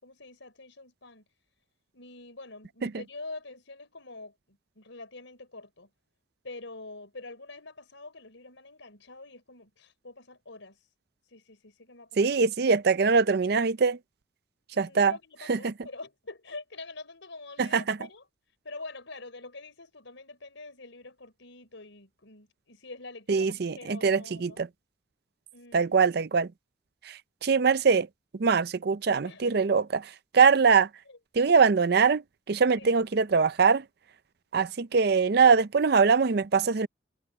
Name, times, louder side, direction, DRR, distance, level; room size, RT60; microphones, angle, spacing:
voice 1, 0.0-1.2 1.9-5.9 6.4-10.8 11.3-12.4 14.7-18.3 18.6-24.7 25.5-26.0 29.2-29.9 31.1-31.2 32.7-32.9, left 3 dB, 75° left, 4.3 m, -45 dB
voice 2, 12.2-14.0 14.8-15.1 15.5-15.7 17.6-18.0 23.3-24.7 25.7-26.5 27.1-28.1 28.4-29.8 30.3-30.9 31.3-32.2 32.5-33.8 34.5-36.9, right 5 dB, 55° right, 0.5 m, -22 dB
head